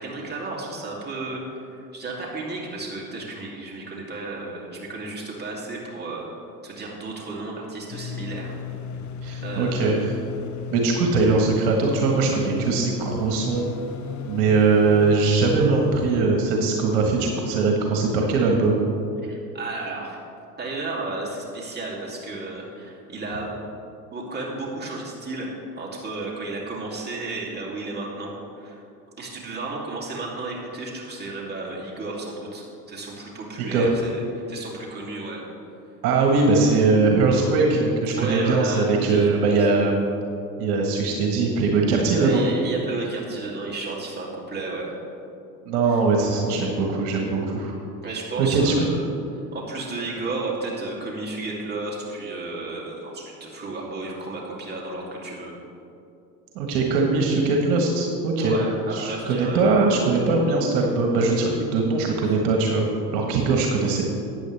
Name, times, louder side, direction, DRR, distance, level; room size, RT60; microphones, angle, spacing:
voice 1, 0.0-6.3 6.6-8.5 9.4-10.0 19.2-20.2 20.6-23.6 24.1-25.5 25.8-28.8 29.2-35.4 38.1-39.4 42.1-44.9 45.9-46.0 48.0-49.0 49.5-55.5 58.4-59.8, right 3 dB, 20° right, -4 dB, 2.7 m, -33 dB
sound 1, 7.9-16.2, left 6 dB, 35° left, 0.8 m, -35 dB
voice 2, 9.2-10.1 10.7-13.7 14.3-18.8 33.7-33.9 36.0-39.9 40.6-42.4 45.7-47.7 48.4-48.7 56.5-58.6 58.9-64.0, right 3 dB, 65° right, 1 dB, 1.6 m, -21 dB
13.0 x 9.2 x 3.4 m, 2.7 s
hypercardioid pair, 80°, 49 cm